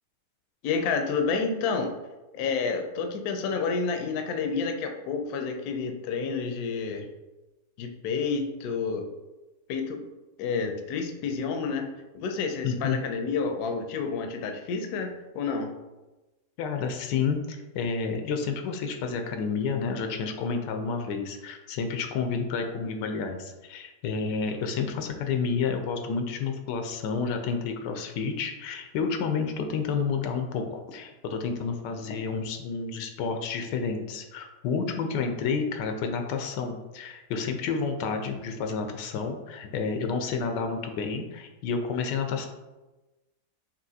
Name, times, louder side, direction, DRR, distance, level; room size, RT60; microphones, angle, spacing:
voice 1, 0.6-1.9 2.3-7.1 7.8-9.0 9.7-10.0 10.4-15.7, left 5 dB, 70° left, 5 dB, 1.0 m, -29 dB
voice 2, 12.6-13.0 16.6-42.5, left 5 dB, 90° left, 5 dB, 1.2 m, -30 dB
5.4 x 2.9 x 2.7 m, 1.1 s
omnidirectional pair, 1.8 m